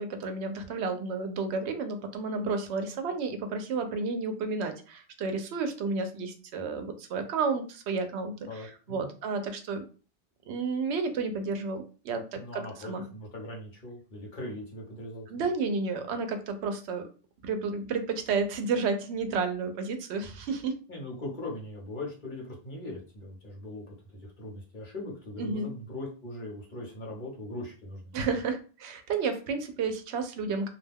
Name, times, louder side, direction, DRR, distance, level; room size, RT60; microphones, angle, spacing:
voice 1, 0.0-9.8 10.5-13.0 15.3-17.0 17.4-20.8 25.4-25.7 28.1-30.7, right 4 dB, 85° right, 7 dB, 0.8 m, -31 dB
voice 2, 8.5-9.1 12.3-15.5 20.9-23.9 24.2-28.1, left 1 dB, 50° left, -2 dB, 1.0 m, -40 dB
2.4 x 2.2 x 3.4 m, 0.37 s
omnidirectional pair, 1.1 m